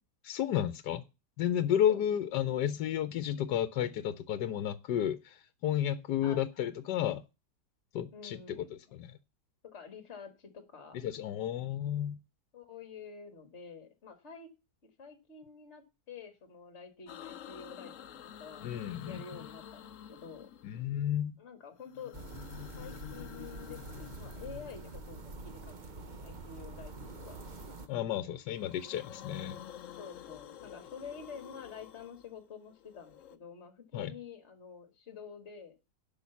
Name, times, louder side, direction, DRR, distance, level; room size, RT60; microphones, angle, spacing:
voice 1, 0.2-1.0 1.4-7.2 7.9-9.2 10.9-12.2 18.6-19.4 20.6-21.4 27.9-29.6 33.9-34.1, left 10 dB, 80° left, 1.3 m, -32 dB
voice 2, 8.1-8.8 9.7-11.0 12.5-14.5 15.0-18.7 19.0-20.5 21.4-22.1 22.8-27.4 28.2-28.4 30.0-35.8, left 6 dB, 40° left, 2.0 m, -48 dB
sound 1, 17.1-21.0 21.8-25.5 26.9-28.0 28.4-33.4, left 10 dB, 60° left, 0.9 m, -50 dB
sound 2, 22.1-27.9, right 3 dB, 35° right, 0.8 m, -46 dB
10.5 x 5.8 x 7.0 m
omnidirectional pair, 1.8 m